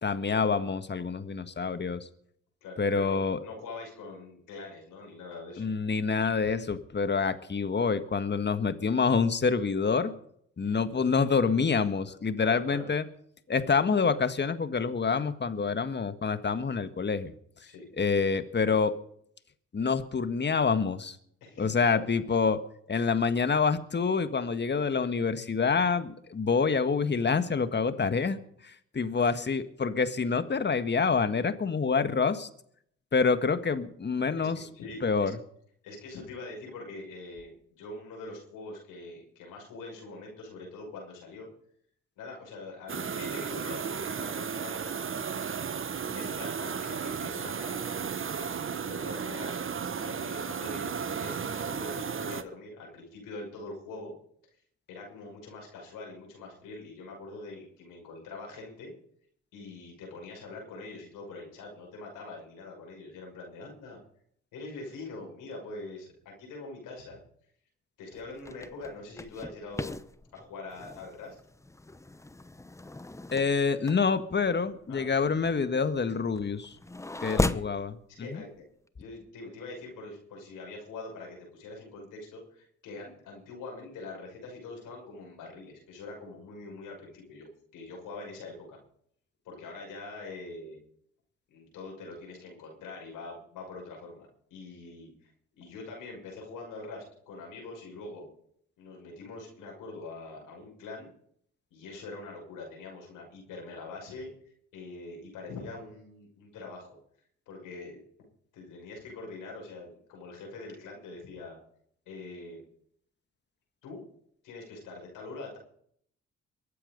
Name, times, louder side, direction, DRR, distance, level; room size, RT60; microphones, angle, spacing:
voice 1, 0.0-2.0 2.8-3.4 5.6-10.1 10.6-13.0 13.5-17.3 18.0-18.9 19.7-21.2 21.6-22.6 22.9-28.4 28.6-32.5 33.1-34.7 35.0-35.3 73.3-76.7 77.2-78.4, left 5 dB, 30° left, 11 dB, 1.6 m, -27 dB
voice 2, 2.6-5.7 10.6-10.8 12.4-12.9 17.6-17.8 21.4-22.0 29.1-29.3 34.4-35.3 35.8-41.5 42.2-45.0 46.1-49.6 50.0-54.1 54.9-58.9 59.5-64.0 64.5-67.2 68.0-70.0 70.3-71.4 74.9-75.0 77.1-77.7 78.2-78.6 79.0-88.8 89.4-90.8 91.5-95.3 95.6-98.3 98.8-101.1 101.7-104.3 104.7-107.0 107.5-108.0 108.5-111.6 112.1-112.6 113.8-114.0 114.4-115.6, left 3 dB, 75° left, 0 dB, 6.0 m, -44 dB
sound 1, 42.9-52.4, right 6 dB, 40° right, 1.1 m, -34 dB
sound 2, 68.1-77.8, left 2 dB, 10° left, 0.8 m, -37 dB
23.0 x 8.6 x 5.2 m, 0.65 s
hypercardioid pair, 50°, 33 cm